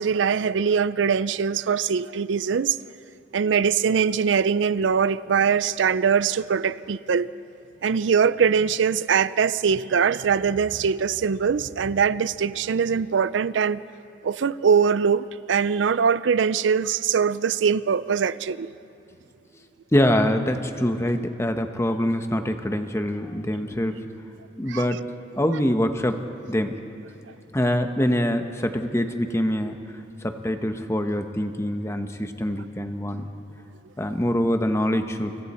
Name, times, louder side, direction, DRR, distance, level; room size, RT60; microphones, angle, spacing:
voice 1, 0.0-2.8 3.3-7.3 7.8-13.8 14.2-18.7 24.7-24.9, right 6 dB, 80° right, 0.4 m, -22 dB
voice 2, 19.9-24.0 24.6-25.0 25.4-26.2 26.5-26.8 27.5-29.8 30.2-33.3 34.0-35.4, equal, 15° left, 1.0 m, -24 dB
30.0 x 25.5 x 4.3 m
head